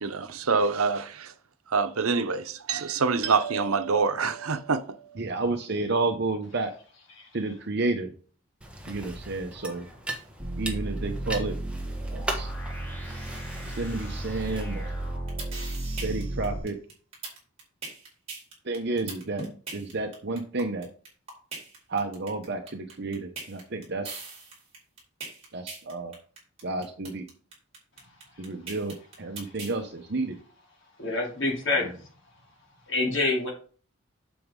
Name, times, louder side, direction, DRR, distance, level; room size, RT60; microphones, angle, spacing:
voice 1, 0.0-1.3 1.7-5.2, right 4 dB, 90° right, 0.8 m, -26 dB
voice 2, 5.2-6.7 7.3-8.1 8.9-9.9 10.6-11.6 12.1-12.5 13.8-14.9 16.0-16.8 18.6-19.5 19.7-20.9 21.9-24.2 25.5-26.1 26.6-27.2 28.4-30.3, right 3 dB, 50° right, 0.8 m, -31 dB
sound 1, 8.6-15.2, right 1 dB, 5° right, 1.2 m, -39 dB
sound 2, 10.4-16.6, right 1 dB, 10° left, 2.2 m, -34 dB
sound 3, 15.1-29.8, right 4 dB, 30° right, 4.3 m, -40 dB
voice 3, 31.0-32.0 32.9-33.5, left 2 dB, 60° left, 3.1 m, -27 dB
8.5 x 7.1 x 3.8 m
head